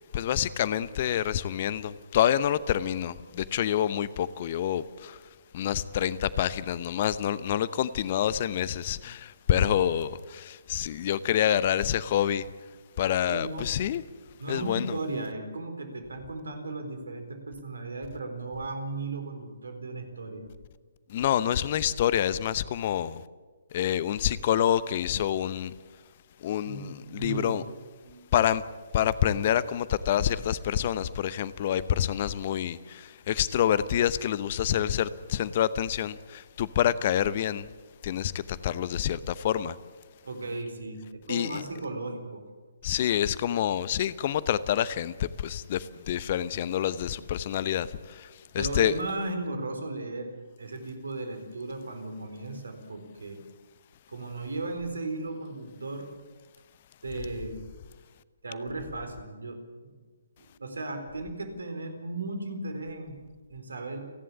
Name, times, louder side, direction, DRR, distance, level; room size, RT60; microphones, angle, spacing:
voice 1, 0.1-5.2 5.5-12.5 13.0-14.0 14.5-14.9 21.1-23.2 23.7-25.7 26.4-27.6 28.3-28.6 28.9-37.7 38.0-39.8 41.3-41.6 42.8-48.9, left 10 dB, 40° left, 0.8 m, -27 dB
voice 2, 13.3-13.7 14.4-20.5 26.6-27.6 28.0-28.3 40.2-42.5 48.6-50.3 50.6-53.4 54.1-56.1 57.0-57.6 58.4-60.0 60.4-63.2 63.5-64.1, right 2 dB, 70° right, 4.1 m, -36 dB
29.5 x 11.0 x 8.5 m
figure-of-eight pair, 135°, 0 cm